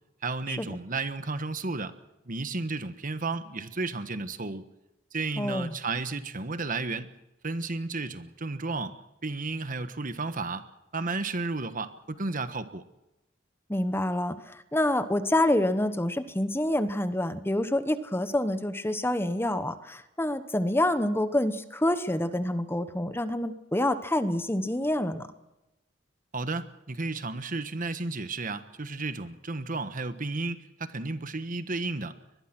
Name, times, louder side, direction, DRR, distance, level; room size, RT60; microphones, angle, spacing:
voice 1, 0.2-1.9 2.3-4.7 5.1-7.1 7.4-9.0 9.2-10.7 10.9-12.8 26.3-32.2, right 3 dB, 45° right, 12 dB, 1.3 m, -33 dB
voice 2, 5.4-5.7 13.7-25.3, left 1 dB, 10° left, 12 dB, 1.0 m, -27 dB
23.5 x 21.0 x 6.1 m, 0.95 s
head